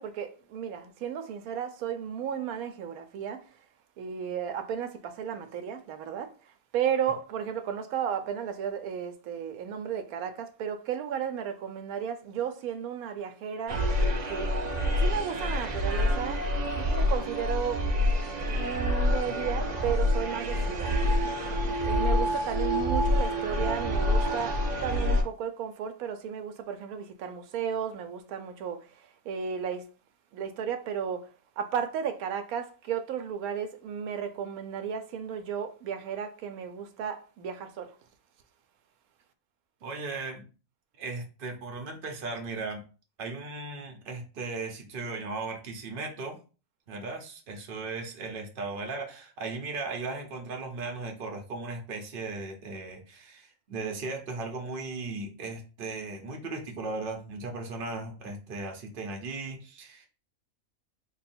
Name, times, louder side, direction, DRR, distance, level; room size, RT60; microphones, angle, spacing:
voice 1, 0.0-3.4 4.0-6.3 6.7-13.8 14.3-14.5 15.0-16.5 16.7-17.8 18.4-21.0 21.9-29.9 30.3-38.0, right 8 dB, 85° right, 1.0 m, -34 dB
sound 1, 13.7-25.2, left 1 dB, 70° right, 0.4 m, -27 dB
voice 2, 39.8-40.5 41.0-42.8 43.2-46.4 46.9-60.1, right 3 dB, 45° right, 0.9 m, -37 dB
3.1 x 2.3 x 4.2 m
omnidirectional pair, 1.5 m